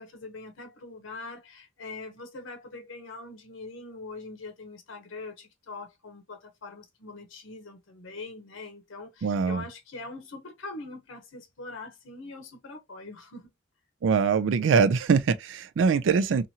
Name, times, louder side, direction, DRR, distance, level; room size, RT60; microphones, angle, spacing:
voice 1, 0.0-13.5, left 3 dB, 85° left, 0.8 m, -42 dB
voice 2, 9.2-9.6 14.0-16.5, right 5 dB, 70° right, 0.4 m, -23 dB
2.8 x 2.5 x 2.7 m
head